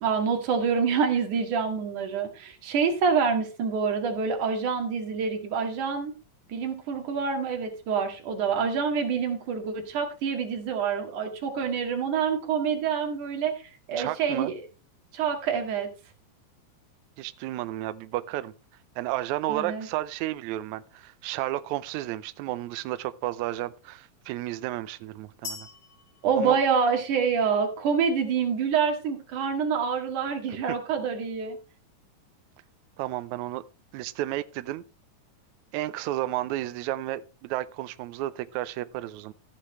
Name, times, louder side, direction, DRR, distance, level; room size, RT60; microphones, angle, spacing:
voice 1, 0.0-6.1 6.5-14.6 15.1-15.9 19.5-19.9 26.2-31.6, right 6 dB, 60° right, 3.3 m, -27 dB
voice 2, 14.0-14.5 17.2-18.5 19.0-25.7 26.4-26.6 33.0-33.6 33.9-34.8 35.7-39.3, right 15 dB, 85° right, 1.6 m, -32 dB
sound 1, 25.4-27.4, left 5 dB, 60° left, 3.3 m, -43 dB
14.5 x 8.7 x 3.1 m
omnidirectional pair, 4.1 m